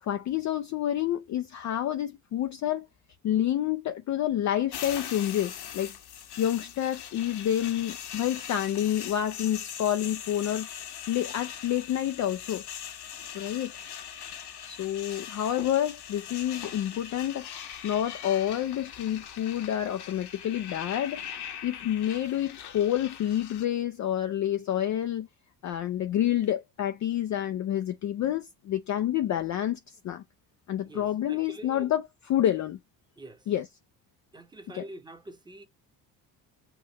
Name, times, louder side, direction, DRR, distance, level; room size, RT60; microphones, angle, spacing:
voice 1, 0.0-2.9 3.2-5.9 6.4-10.7 11.1-12.6 13.3-13.7 14.6-17.5 17.8-21.2 21.6-25.3 25.6-30.2 30.7-32.0 32.3-32.8 33.5-33.7 34.7-34.8, left 11 dB, 40° left, 0.4 m, -28 dB
sound 1, 4.7-23.7, left 9 dB, 55° left, 1.0 m, -41 dB
voice 2, 30.9-31.9 33.2-33.5 34.3-35.7, right 1 dB, 10° right, 0.9 m, -45 dB
5.8 x 2.5 x 3.0 m
hypercardioid pair, 65°, 48 cm